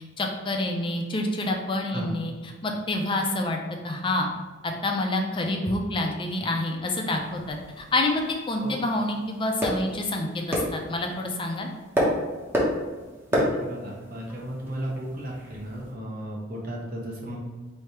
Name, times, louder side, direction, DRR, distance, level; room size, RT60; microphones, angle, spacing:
voice 1, 0.2-3.6 3.8-4.3 4.6-11.7, left 2 dB, 25° left, 2 dB, 0.5 m, -27 dB
sound 1, 7.1-15.9, equal, 10° right, 0.8 m, -31 dB
voice 2, 13.3-17.4, right 1 dB, 45° right, -3 dB, 1.0 m, -35 dB
3.3 x 2.8 x 4.4 m, 1.3 s
head